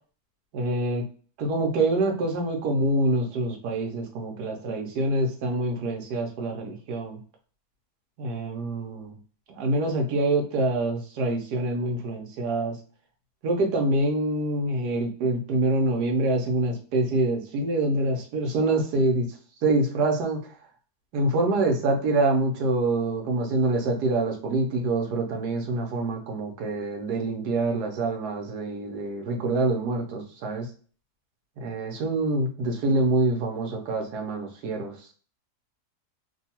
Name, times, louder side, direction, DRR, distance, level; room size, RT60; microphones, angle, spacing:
voice 1, 0.5-1.1 1.4-7.2 8.2-9.2 9.5-12.8 13.4-19.3 19.6-20.4 21.1-30.7 31.6-35.0, right 2 dB, 75° right, 3 dB, 1.2 m, -26 dB
3.1 x 2.3 x 2.8 m, 0.41 s
omnidirectional pair, 1.8 m